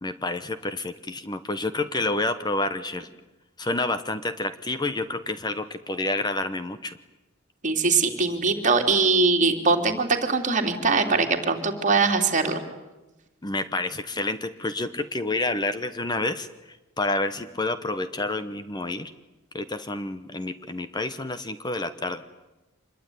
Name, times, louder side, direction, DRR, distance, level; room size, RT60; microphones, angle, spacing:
voice 1, 0.0-3.1 3.6-7.0 13.4-19.1 19.5-22.2, left 2 dB, 20° left, 11 dB, 1.0 m, -29 dB
voice 2, 7.6-12.6, right 4 dB, 35° right, 3 dB, 3.2 m, -22 dB
26.5 x 21.5 x 10.0 m, 1.1 s
head